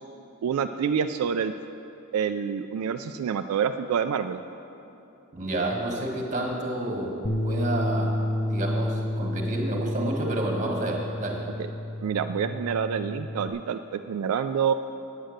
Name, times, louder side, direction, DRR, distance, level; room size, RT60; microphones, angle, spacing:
voice 1, 0.4-1.5 2.1-4.4 12.0-14.7, right 7 dB, 85° right, 8 dB, 0.3 m, -27 dB
voice 2, 5.3-7.1 7.4-8.2 8.5-11.4, right 1 dB, 35° right, 0 dB, 1.5 m, -29 dB
Bass guitar, 7.2-13.5, left 1 dB, 20° left, 0.4 m, -30 dB
9.0 x 8.2 x 6.4 m, 2.9 s
head